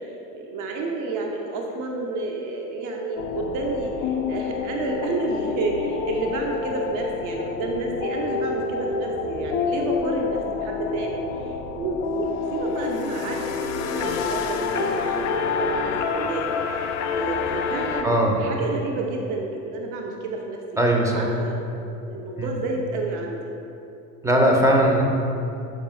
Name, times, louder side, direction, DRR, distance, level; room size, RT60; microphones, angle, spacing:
voice 1, 0.3-16.4 16.7-16.9 17.1-20.6 21.1-23.4, right 2 dB, 40° right, 1 dB, 0.8 m, -30 dB
sound 1, 3.2-18.0, left 5 dB, 35° left, 0.5 m, -28 dB
voice 2, 18.0-18.4 20.8-21.3 22.4-22.5 24.2-25.0, right 1 dB, 5° right, 0 dB, 0.8 m, -19 dB
6.6 x 5.2 x 3.1 m, 2.8 s
figure-of-eight pair, 70°, 47 cm